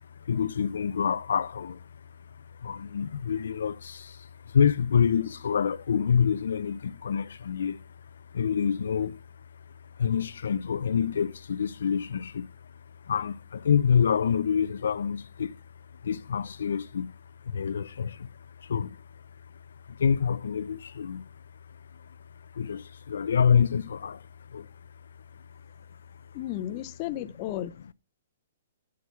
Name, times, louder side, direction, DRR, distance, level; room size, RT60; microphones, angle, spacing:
voice 1, 0.2-1.8 2.6-7.8 8.3-9.2 10.0-12.5 13.1-15.6 16.0-17.1 17.4-18.3 18.6-19.0 19.9-21.2 22.5-24.2 24.5-24.7, left 7 dB, 90° left, 0.4 m, -27 dB
voice 2, 26.3-27.9, left 13 dB, 30° left, 0.6 m, -34 dB
9.4 x 6.2 x 5.6 m
hypercardioid pair, 165°, 0 cm